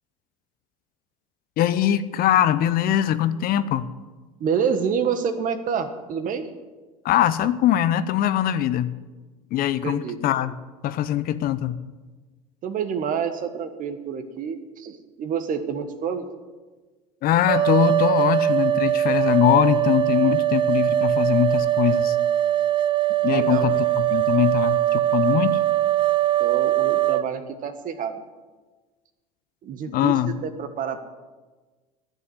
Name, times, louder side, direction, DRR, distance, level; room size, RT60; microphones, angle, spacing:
voice 1, 1.6-3.9 7.0-8.9 9.5-10.5 10.8-11.8 17.2-22.2 23.2-25.6 29.9-30.3, left 11 dB, 50° left, 13 dB, 0.8 m, -22 dB
voice 2, 4.4-6.5 9.8-10.2 12.6-16.3 23.3-23.6 26.4-28.2 29.6-31.1, right 7 dB, 45° right, 8 dB, 1.6 m, -28 dB
sound 1, 17.5-27.2, right 13 dB, 25° right, 0.3 m, -21 dB
11.5 x 7.6 x 9.8 m, 1.3 s
hypercardioid pair, 85°, 19 cm